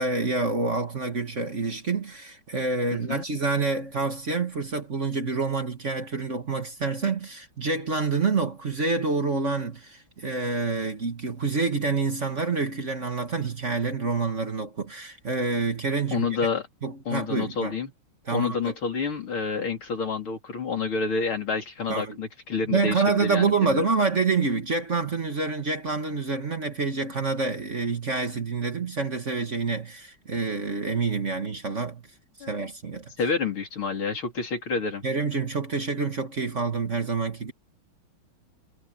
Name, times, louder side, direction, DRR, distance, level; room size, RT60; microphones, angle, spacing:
voice 1, 0.0-16.3 16.8-17.7 18.3-18.7 21.9-22.2 22.7-32.0 32.5-33.1 35.0-37.5, right 4 dB, 35° right, 1.8 m, -27 dB
voice 2, 2.9-3.2 16.1-16.7 17.1-17.9 18.3-23.9 32.4-32.5 33.2-35.0, left 5 dB, 75° left, 4.5 m, -29 dB
omnidirectional pair, 2.3 m